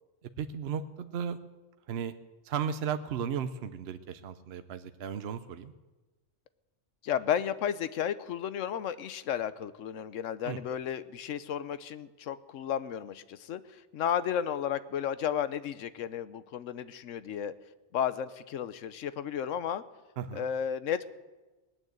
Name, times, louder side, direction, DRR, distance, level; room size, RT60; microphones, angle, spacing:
voice 1, 0.4-1.4 1.9-2.1 2.4-5.7 10.4-10.6 20.2-20.4, right 7 dB, 60° right, 10 dB, 0.9 m, -35 dB
voice 2, 7.0-17.5 17.9-19.8 20.3-21.1, left 9 dB, 85° left, 14 dB, 1.1 m, -33 dB
19.0 x 9.2 x 7.9 m, 1.2 s
omnidirectional pair, 1.3 m